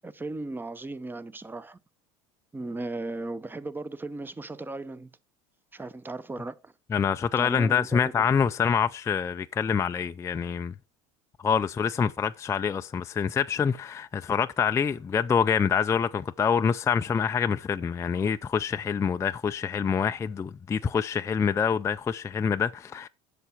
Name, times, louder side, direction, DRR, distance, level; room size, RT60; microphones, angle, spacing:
voice 1, 0.0-1.8 2.5-5.1 5.7-6.7 7.4-8.3, right 2 dB, 10° right, 0.7 m, -36 dB
voice 2, 6.9-10.7 11.4-23.1, left 7 dB, 20° left, 0.3 m, -26 dB
8.0 x 5.9 x 5.6 m
supercardioid pair, 95°, 16 cm